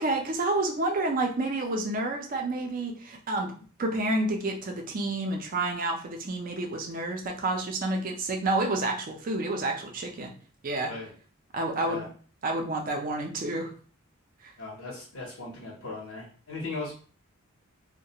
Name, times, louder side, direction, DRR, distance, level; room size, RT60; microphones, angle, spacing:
voice 1, 0.0-3.5 3.8-10.3 10.6-10.9 11.5-12.1 12.4-13.7, right 2 dB, 40° right, 2 dB, 0.5 m, -29 dB
voice 2, 14.6-16.9, left 3 dB, 90° left, -5 dB, 0.7 m, -38 dB
2.3 x 2.1 x 2.8 m, 0.41 s
head